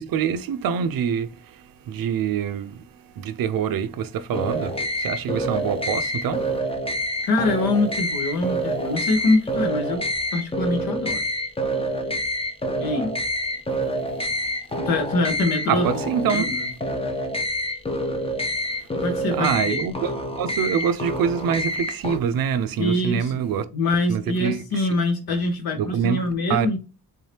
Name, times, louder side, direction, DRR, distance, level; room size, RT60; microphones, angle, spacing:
voice 1, 0.0-6.5 15.7-16.5 18.7-18.8 19.3-23.7 24.1-24.9 25.8-26.7, right 7 dB, 70° right, 0.5 m, -25 dB
sound 1, 4.3-22.2, equal, 15° left, 0.5 m, -27 dB
voice 2, 7.2-10.0 10.3-11.2 12.8-13.1 14.8-15.9 16.2-16.7 19.0-19.8 22.8-23.4 23.7-26.8, left 2 dB, 75° left, 1.2 m, -24 dB
3.7 x 2.7 x 3.2 m
wide cardioid pair, 140°, 37 cm